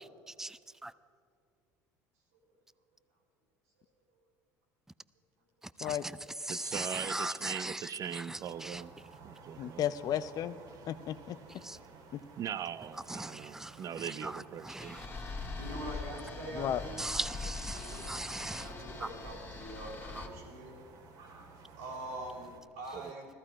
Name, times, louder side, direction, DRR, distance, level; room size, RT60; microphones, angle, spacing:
voice 1, 0.3-0.9 5.8-6.1 6.4-8.8 11.6-11.8 13.1-15.0 17.0-18.7 19.0-19.1 20.1-20.2, right 2 dB, 5° right, 0.5 m, -39 dB
voice 2, 6.5-8.9 9.2-9.9 12.4-15.0 22.9-23.1, right 9 dB, 45° right, 0.7 m, -40 dB
sound 1, 8.4-22.6, right 4 dB, 65° right, 1.9 m, -54 dB
voice 3, 9.6-10.6 10.9-11.4 12.1-12.2 16.6-16.8, left 10 dB, 55° left, 0.6 m, -33 dB
sound 2, 14.8-20.3, left 4 dB, 25° left, 1.7 m, -42 dB
voice 4, 15.5-17.0 17.3-17.4 17.7-18.0 18.6-20.8 21.8-23.3, right 1 dB, 85° right, 4.1 m, -43 dB
14.5 x 14.0 x 5.0 m
hypercardioid pair, 75°, 8 cm